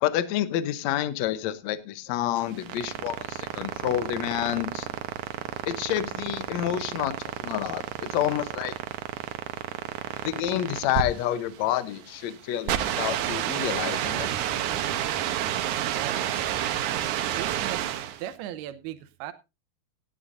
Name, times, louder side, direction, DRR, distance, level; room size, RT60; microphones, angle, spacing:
voice 1, 0.0-4.9 5.7-8.7 10.2-14.3, left 12 dB, 90° left, 13 dB, 1.5 m, -29 dB
sound 1, 2.4-18.3, right 11 dB, 70° right, 1.9 m, -30 dB
voice 2, 15.9-16.6 17.4-19.3, right 12 dB, 90° right, 11 dB, 2.7 m, -38 dB
17.0 x 10.5 x 2.6 m, 0.26 s
omnidirectional pair, 4.4 m